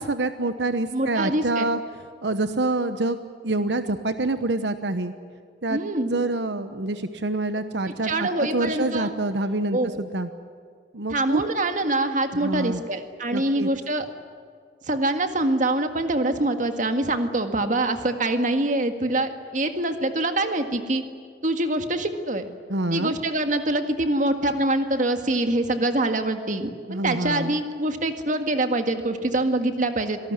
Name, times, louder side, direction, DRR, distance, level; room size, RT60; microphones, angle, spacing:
voice 1, 0.0-1.8 2.2-3.2 3.4-5.1 5.6-5.8 6.1-8.3 8.5-10.3 10.9-11.4 12.4-12.8 13.3-13.7 22.7-23.1 26.9-27.5, right 2 dB, 80° right, 10 dB, 1.1 m, -26 dB
voice 2, 0.9-1.7 5.7-6.1 8.0-9.1 9.7-10.0 11.1-14.1 14.9-21.0 21.4-22.4 22.9-30.2, right 2 dB, 45° right, 7 dB, 1.9 m, -24 dB
26.5 x 18.5 x 9.6 m, 2.1 s
head